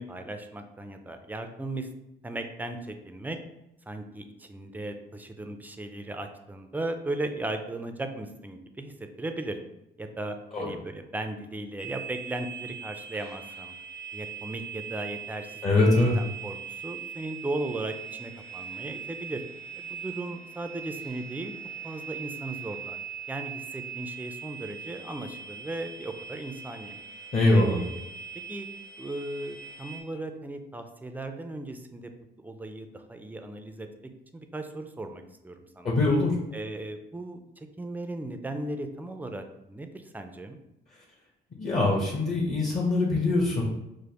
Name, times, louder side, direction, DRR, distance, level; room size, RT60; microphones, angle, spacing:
voice 1, 0.0-1.9 2.2-3.4 3.9-9.6 10.0-13.7 14.1-19.4 19.8-21.5 21.8-23.0 23.3-27.0 27.5-28.0 28.5-28.7 29.0-32.1 32.4-33.9 34.3-35.9 36.5-40.6, right 2 dB, 10° right, 6 dB, 0.4 m, -37 dB
sound 1, 11.8-30.0, right 7 dB, 60° left, 1.2 m, -41 dB
voice 2, 15.6-16.1 27.3-27.8 35.8-36.4 41.6-43.6, left 2 dB, 40° left, -4 dB, 0.9 m, -23 dB
5.0 x 2.0 x 2.9 m, 0.90 s
cardioid pair, 90°, 20 cm